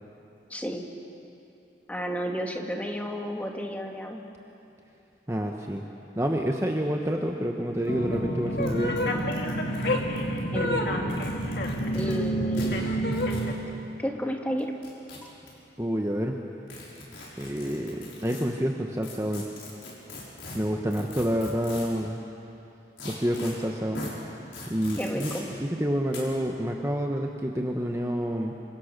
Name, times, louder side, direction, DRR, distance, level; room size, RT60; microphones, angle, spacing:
voice 1, 0.5-0.9 1.9-4.2 10.5-10.9 11.9-13.1 14.0-14.7 25.0-25.5, equal, 10° left, 2 dB, 1.8 m, -32 dB
voice 2, 5.3-5.8 6.2-8.9 15.8-16.4 17.4-19.4 20.5-22.2 23.0-24.1 24.7-25.3 25.6-28.5, equal, 15° right, 1 dB, 1.1 m, -28 dB
sound 1, 7.9-8.0 8.1-8.2 8.6-8.7 9.0-10.4 11.0-12.1 12.5-12.7 13.1-13.5 14.6-15.5 16.7-18.4 19.0-22.0 23.0-23.5 23.9-24.1 24.5-25.4 26.1-26.2, left 3 dB, 85° left, 6.4 m, -41 dB
sound 2, 7.9-13.5, equal, 60° left, 2.2 m, -28 dB
27.5 x 25.0 x 6.7 m, 2.8 s
head